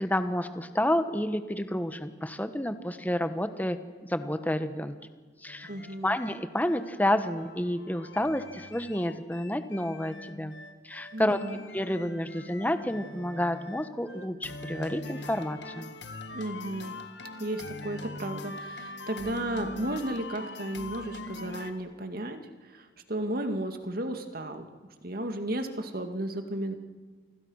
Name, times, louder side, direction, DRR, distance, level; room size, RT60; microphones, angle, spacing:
voice 1, 0.0-5.0 5.4-5.7 6.0-10.5 10.8-11.4 11.7-15.9, left 1 dB, 10° left, 10 dB, 1.2 m, -30 dB
sound 1, 5.5-21.7, left 2 dB, 70° left, 2.0 m, -42 dB
voice 2, 5.7-6.2 11.1-11.6 16.3-16.9 17.4-22.4 22.7-24.7 25.0-26.7, right 1 dB, 50° right, 7 dB, 2.2 m, -34 dB
29.5 x 26.0 x 6.4 m, 1.4 s
head